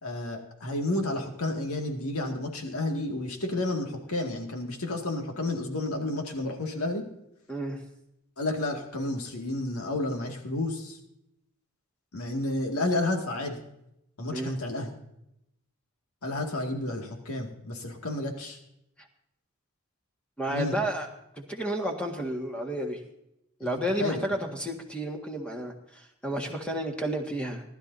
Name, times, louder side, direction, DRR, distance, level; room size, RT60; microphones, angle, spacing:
voice 1, 0.0-7.0 8.4-11.0 12.1-13.6 14.2-14.9 16.2-18.6 20.5-20.7 23.6-24.3, left 2 dB, 90° left, 3 dB, 2.1 m, -31 dB
voice 2, 7.5-7.8 14.3-14.6 19.0-19.1 20.4-21.1 21.3-23.0 23.6-27.6, right 1 dB, 5° left, 1 dB, 1.7 m, -31 dB
19.5 x 12.0 x 2.7 m, 0.81 s
head